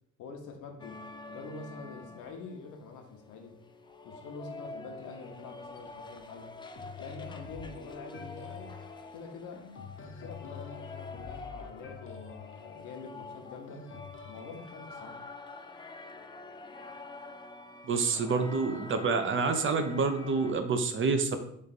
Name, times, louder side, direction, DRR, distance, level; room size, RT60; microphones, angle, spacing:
voice 1, 0.2-1.0 1.3-3.6 4.0-6.6 7.0-8.8 9.1-9.7 10.0-13.9 14.2-15.2 18.1-18.4, left 4 dB, 80° left, 3 dB, 0.9 m, -45 dB
sound 1, 0.8-20.5, left 3 dB, 15° left, 0.3 m, -47 dB
sound 2, 6.7-14.7, left 5 dB, 45° left, 0.7 m, -47 dB
voice 2, 17.8-21.4, right 4 dB, 40° right, 7 dB, 0.6 m, -28 dB
3.4 x 3.2 x 4.0 m, 0.71 s
cardioid pair, 90°, 30 cm